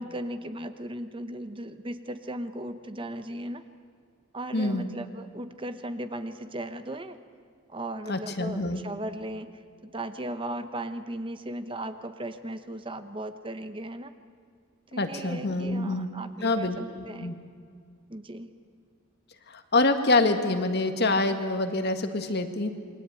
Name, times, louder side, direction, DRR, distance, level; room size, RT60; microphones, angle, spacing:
voice 1, 0.0-3.6 4.3-7.2 7.7-9.5 9.9-14.1 14.9-17.4 18.1-18.5, right 1 dB, 25° right, 10 dB, 0.9 m, -37 dB
voice 2, 4.5-4.9 8.1-8.8 15.0-16.1 16.4-17.3 19.5-22.7, left 2 dB, 50° left, 7 dB, 1.9 m, -26 dB
28.0 x 22.5 x 9.1 m, 2.2 s
head